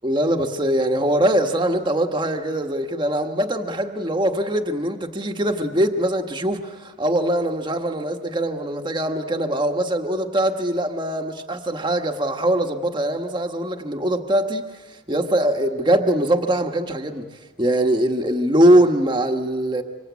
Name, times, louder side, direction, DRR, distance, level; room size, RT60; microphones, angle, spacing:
voice 1, 0.0-17.3 17.6-19.8, right 1 dB, 25° right, 4 dB, 1.6 m, -22 dB
26.0 x 25.5 x 8.4 m, 1.5 s
head